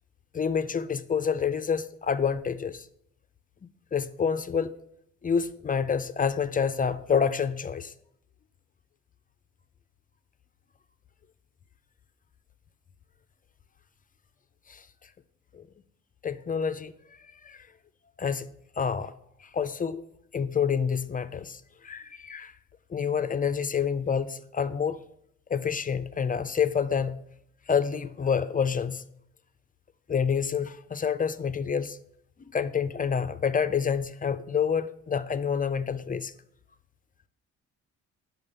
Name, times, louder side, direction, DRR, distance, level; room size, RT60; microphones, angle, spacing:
voice 1, 0.3-2.8 3.9-4.7 5.2-7.9 14.7-14.8 15.5-15.6 16.2-16.9 17.5-17.6 18.2-18.5 18.8-19.1 19.5-20.0 20.3-22.5 22.9-25.0 25.5-27.2 27.7-29.0 30.1-32.0 32.5-36.3, left 6 dB, 30° left, 0.5 m, -28 dB
7.2 x 5.8 x 6.7 m
cardioid pair, 90°, 30 cm